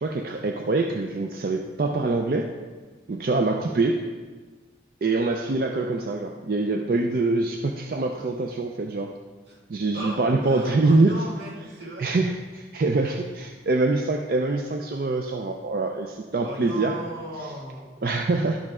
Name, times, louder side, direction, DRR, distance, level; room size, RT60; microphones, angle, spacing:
voice 1, 0.0-2.5 3.1-4.0 5.0-9.1 9.7-11.2 12.0-16.9 18.0-18.6, right 3 dB, 55° right, 3 dB, 0.4 m, -24 dB
voice 2, 9.9-12.2 16.3-17.9, right 1 dB, 80° right, -4 dB, 2.0 m, -36 dB
12.0 x 5.2 x 3.6 m, 1.4 s
head